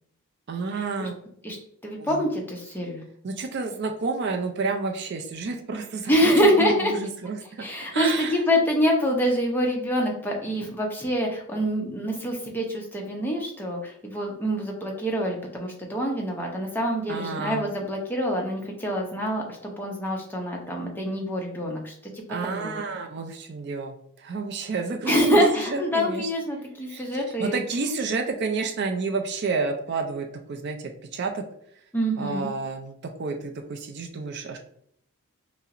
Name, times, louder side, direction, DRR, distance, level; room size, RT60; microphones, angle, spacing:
voice 1, 0.5-1.2 2.0-2.2 3.2-7.6 7.9-8.4 17.1-17.6 22.3-26.3 26.9-31.4 32.2-34.6, right 4 dB, 50° right, 4 dB, 0.3 m, -30 dB
voice 2, 1.8-3.0 6.1-6.9 7.6-22.7 25.0-27.6 31.9-32.5, equal, 10° left, 0 dB, 0.6 m, -25 dB
5.4 x 2.0 x 2.5 m, 0.69 s
head